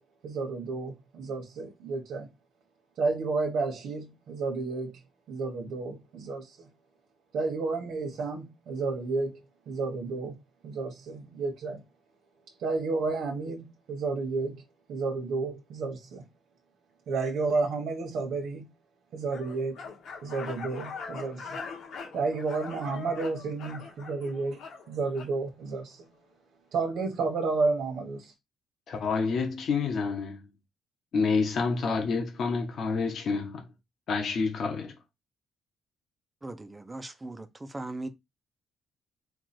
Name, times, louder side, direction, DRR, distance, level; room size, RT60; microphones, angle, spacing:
voice 1, 0.2-2.3 3.0-4.9 5.3-6.5 7.3-9.3 9.7-10.3 10.6-11.8 12.6-14.6 14.9-16.2 17.1-18.7 19.1-19.8 20.2-21.6 22.1-24.6 24.9-26.0 26.7-28.3, right 3 dB, 60° right, 1.1 m, -31 dB
sound 1, 19.3-25.3, left 5 dB, 60° left, 1.4 m, -42 dB
voice 2, 28.9-30.4 31.1-33.6 34.1-34.9, left 4 dB, 45° left, 0.9 m, -28 dB
voice 3, 36.4-37.5 37.7-38.1, right 2 dB, 10° right, 0.5 m, -38 dB
4.6 x 2.4 x 4.2 m
cardioid pair, 175°, 0 cm